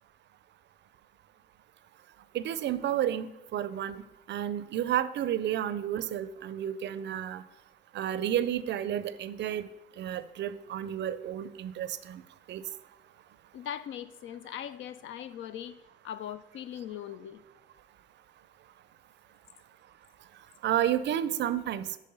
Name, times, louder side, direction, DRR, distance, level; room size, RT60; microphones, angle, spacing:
voice 1, 2.3-4.0 4.3-7.4 7.9-9.7 10.0-12.2 12.5-12.6 20.6-22.0, right 11 dB, 65° right, 14 dB, 0.4 m, -31 dB
voice 2, 13.5-15.7 16.0-17.4, left 10 dB, 75° left, 14 dB, 0.4 m, -40 dB
5.6 x 5.0 x 5.3 m, 1.0 s
cardioid pair, 90°, 20 cm